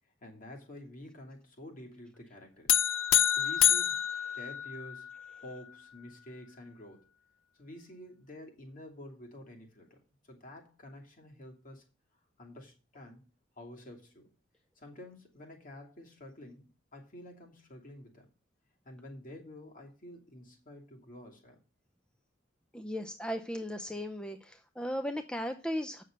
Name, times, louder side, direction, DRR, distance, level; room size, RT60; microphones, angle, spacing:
voice 1, 0.2-2.8 3.3-5.1 5.4-7.0 7.5-11.8 12.4-13.2 13.6-14.3 14.8-18.3 18.8-21.6, left 1 dB, 45° left, 2.7 m, -49 dB
sound 1, 2.7-5.2, left 11 dB, 80° left, 0.7 m, -27 dB
voice 2, 22.7-26.0, equal, 5° left, 0.6 m, -36 dB
8.5 x 6.5 x 6.5 m
head